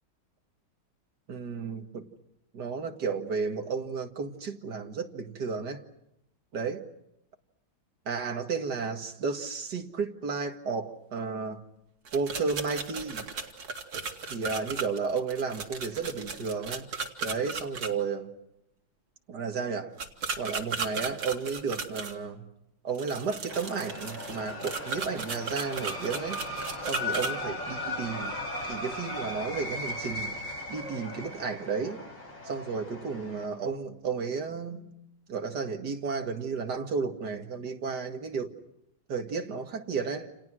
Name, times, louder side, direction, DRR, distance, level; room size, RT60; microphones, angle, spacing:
voice 1, 1.3-2.1 2.5-5.8 6.5-6.8 8.1-11.6 12.1-13.3 14.3-16.9 17.2-18.3 19.3-19.9 20.4-22.5 22.8-26.4 26.8-28.3 28.6-30.3 30.7-32.0 32.4-34.8 35.3-38.6 39.1-40.3, right 5 dB, 55° right, 2.5 m, -33 dB
sound 1, 12.1-17.9 20.0-22.1 23.0-27.3, right 5 dB, 85° right, 3.2 m, -36 dB
sound 2, 23.5-33.4, left 1 dB, 65° left, 8.1 m, -37 dB
30.0 x 28.5 x 6.3 m
omnidirectional pair, 2.2 m